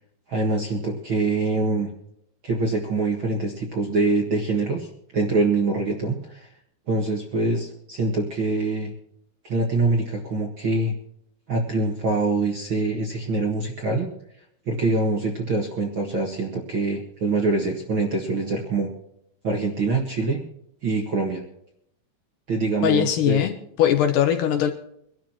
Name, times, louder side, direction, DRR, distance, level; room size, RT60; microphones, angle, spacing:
voice 1, 0.3-1.9 2.4-6.5 6.9-8.9 9.4-10.9 11.5-14.1 14.6-18.9 19.4-20.4 20.8-21.4 22.5-23.5, right 3 dB, 45° right, 0 dB, 1.7 m, -24 dB
voice 2, 22.8-24.7, left 10 dB, 70° left, 6 dB, 2.3 m, -21 dB
24.5 x 12.5 x 3.0 m, 0.73 s
omnidirectional pair, 4.4 m